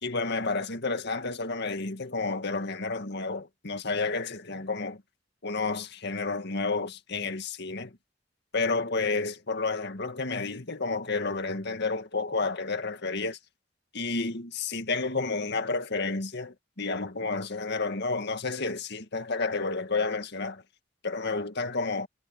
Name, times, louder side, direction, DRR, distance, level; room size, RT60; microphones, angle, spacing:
voice 1, 0.0-5.0 5.4-7.9 8.5-13.4 13.9-20.6 21.0-22.1, left 3 dB, 60° left, 2.0 m, -30 dB
head